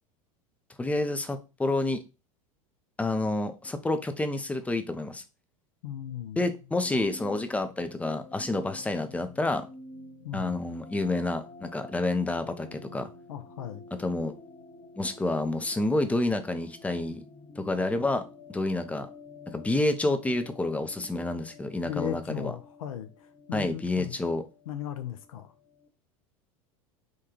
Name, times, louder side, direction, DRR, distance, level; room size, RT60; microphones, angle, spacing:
voice 1, 0.8-2.0 3.0-5.2 6.4-9.7 10.3-13.1 14.0-14.3 15.0-17.2 17.6-18.2 18.5-19.1 19.5-22.5 23.5-24.4, left 2 dB, 10° left, 0.4 m, -29 dB
voice 2, 5.8-6.5 10.2-10.6 13.3-13.8 21.8-24.2 24.7-25.5, left 10 dB, 70° left, 0.5 m, -37 dB
sound 1, 6.4-25.9, left 2 dB, 45° left, 0.8 m, -50 dB
3.7 x 2.3 x 2.9 m
figure-of-eight pair, 80°, 18 cm